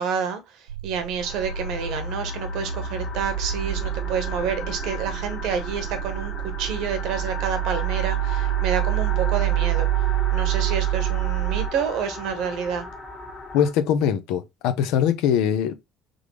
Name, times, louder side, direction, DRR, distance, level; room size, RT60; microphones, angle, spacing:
voice 1, 0.0-9.9 10.3-12.9, right 6 dB, 70° right, 1.1 m, -29 dB
sound 1, 0.7-11.7, right 14 dB, 85° right, 0.3 m, -27 dB
sound 2, 1.2-13.7, left 3 dB, 35° left, 1.6 m, -36 dB
voice 2, 13.5-15.7, left 8 dB, 70° left, 0.7 m, -22 dB
3.8 x 3.4 x 3.2 m
hypercardioid pair, 60°, 0 cm